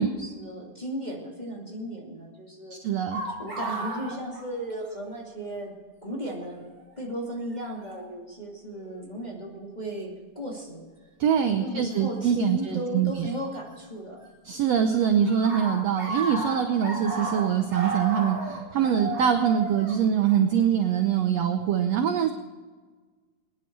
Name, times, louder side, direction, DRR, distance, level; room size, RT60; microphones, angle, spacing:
voice 1, 0.0-2.8 3.4-5.7 6.0-6.7 7.0-10.8 11.5-14.3, equal, 15° left, -3 dB, 2.3 m, -35 dB
voice 2, 2.7-3.2 11.2-13.3 14.4-22.3, right 8 dB, 70° right, 6 dB, 1.6 m, -24 dB
sound 1, 3.1-5.2 5.5-5.6 6.5-6.8 7.8-8.0 8.8-9.3 11.9-12.0 13.4-14.2 14.5-21.1, right 3 dB, 20° right, 3.3 m, -34 dB
22.0 x 10.5 x 4.7 m, 1.4 s
omnidirectional pair, 3.8 m